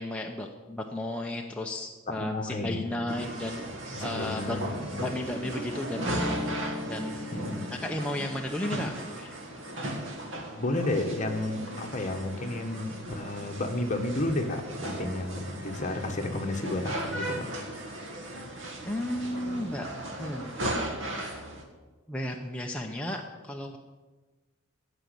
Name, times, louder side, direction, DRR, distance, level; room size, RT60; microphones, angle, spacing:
voice 1, 0.0-3.6 4.0-6.3 6.8-7.5 7.8-9.3 18.8-19.9 20.2-20.5 22.1-23.8, left 1 dB, 5° left, 1 dB, 0.7 m, -34 dB
voice 2, 2.2-3.2 3.9-5.0 7.3-7.6 10.3-17.8, left 2 dB, 40° left, 3 dB, 1.4 m, -32 dB
sound 1, 3.1-21.6, right 1 dB, 65° right, 1.8 m, -37 dB
sound 2, 6.0-11.6, left 1 dB, 10° right, 5.0 m, -39 dB
15.5 x 5.3 x 8.3 m, 1.3 s
head